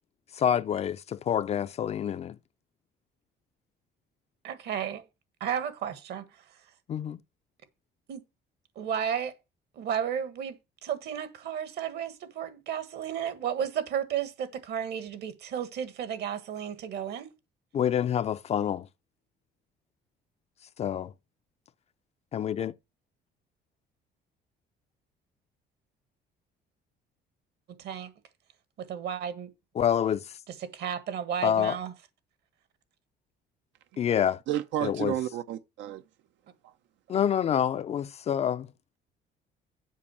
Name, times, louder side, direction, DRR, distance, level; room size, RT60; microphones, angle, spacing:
voice 1, 0.4-2.4 6.9-7.2 17.7-18.9 20.8-21.1 22.3-22.7 29.8-30.2 31.4-31.8 34.0-34.4 34.8-35.1 37.1-38.7, left 9 dB, 35° left, 0.4 m, -27 dB
voice 2, 4.4-5.0 5.4-6.2 8.1-8.2 8.7-9.3 9.7-10.6 10.8-17.3 27.8-28.1 28.9-29.5 30.5-31.9, right 8 dB, 65° right, 1.6 m, -33 dB
voice 3, 34.5-36.0, right 11 dB, 80° right, 0.7 m, -32 dB
7.5 x 5.6 x 7.0 m
cardioid pair, 145°, 19 cm